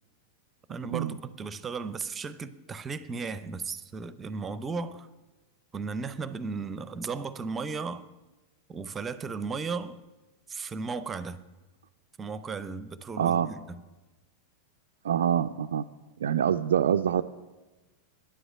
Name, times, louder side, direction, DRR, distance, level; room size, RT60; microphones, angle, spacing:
voice 1, 0.7-5.1 5.7-8.1 8.7-10.0 10.5-11.4 12.2-13.6, right 4 dB, 20° right, 0.6 m, -35 dB
voice 2, 13.2-13.5 15.0-15.8 16.2-17.2, right 9 dB, 65° right, 0.3 m, -25 dB
10.0 x 7.9 x 9.1 m
figure-of-eight pair, 90°, 0 cm